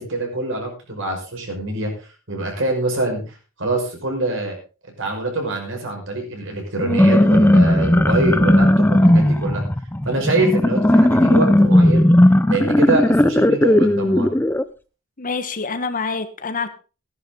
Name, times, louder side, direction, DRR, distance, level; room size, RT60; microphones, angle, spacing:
voice 1, 0.0-4.6 5.0-9.6 10.0-12.1 12.5-14.3, right 2 dB, 65° right, 5.8 m, -25 dB
sound 1, 6.8-14.6, left 1 dB, 10° left, 0.6 m, -15 dB
voice 2, 15.2-16.7, left 4 dB, 40° left, 1.3 m, -26 dB
15.5 x 11.0 x 3.9 m
head